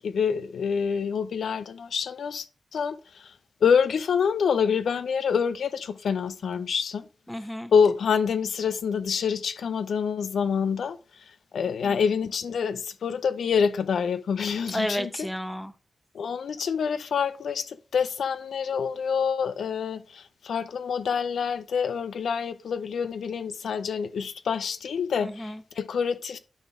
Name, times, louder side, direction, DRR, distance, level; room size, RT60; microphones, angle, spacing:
voice 1, 0.0-2.5 2.7-3.3 3.6-7.1 7.7-11.2 11.5-15.1 16.1-26.4, left 6 dB, 85° left, 0.6 m, -26 dB
voice 2, 7.3-7.7 14.7-15.7 25.2-25.6, equal, 5° left, 1.0 m, -32 dB
11.5 x 4.2 x 3.6 m
cardioid pair, 55°, 0 cm